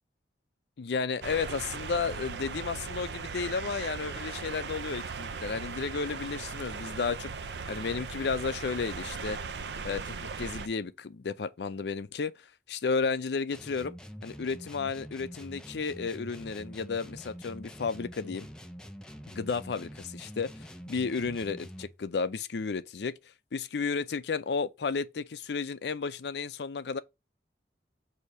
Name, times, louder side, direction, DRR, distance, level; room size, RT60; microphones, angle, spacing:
voice 1, 0.8-7.3 7.7-9.4 9.8-12.3 12.7-14.0 14.2-18.5 19.3-23.2 23.5-27.0, left 5 dB, 70° left, 0.5 m, -33 dB
sound 1, 1.2-10.7, right 5 dB, 75° right, 0.5 m, -38 dB
sound 2, 13.5-22.0, equal, 5° left, 0.5 m, -46 dB
6.4 x 2.8 x 5.4 m
head